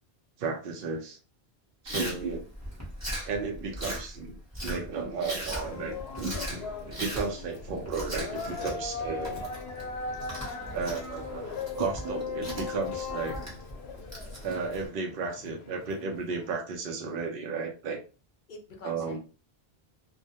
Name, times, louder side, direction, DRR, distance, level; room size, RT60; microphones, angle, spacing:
voice 1, 0.4-1.2 1.8-2.4 3.2-9.4 10.7-13.4 14.4-18.0 18.8-19.2, right 4 dB, 65° right, 2 dB, 0.7 m, -34 dB
voice 2, 1.9-2.5 13.1-13.4 18.5-19.2, left 3 dB, 55° left, 1 dB, 0.7 m, -46 dB
Chewing mastication, 1.9-14.9, equal, 15° right, 0.8 m, -39 dB
sound 1, 5.6-16.5, left 5 dB, 80° left, 0.8 m, -39 dB
2.1 x 2.1 x 2.7 m, 0.34 s
omnidirectional pair, 1.1 m